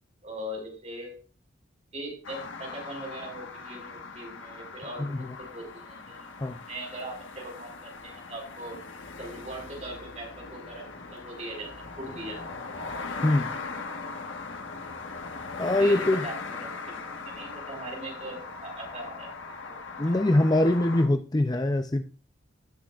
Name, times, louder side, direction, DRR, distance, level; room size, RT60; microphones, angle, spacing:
voice 1, 0.2-1.1 1.9-6.2 6.7-8.8 9.2-11.7 12.0-12.4 15.7-19.3 19.6-20.1, right 1 dB, 35° right, 4.9 m, -40 dB
sound 1, 2.2-21.1, left 4 dB, 85° left, 1.4 m, -39 dB
voice 2, 15.6-16.2 20.0-22.0, left 1 dB, 20° left, 0.5 m, -23 dB
18.5 x 6.5 x 2.4 m
head